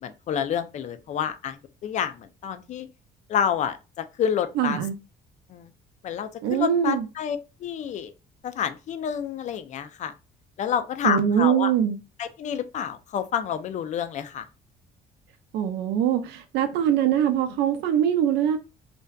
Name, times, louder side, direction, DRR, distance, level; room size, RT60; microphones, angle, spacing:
voice 1, 0.0-1.6 1.8-2.9 3.3-4.8 5.5-5.7 6.0-8.1 8.4-10.1 10.6-11.7 12.2-14.5, left 8 dB, 45° left, 0.4 m, -29 dB
voice 2, 4.6-5.0 6.4-7.1 11.0-12.0 15.5-18.6, right 9 dB, 85° right, 0.4 m, -23 dB
2.6 x 2.1 x 2.2 m
cardioid pair, 110°, 17 cm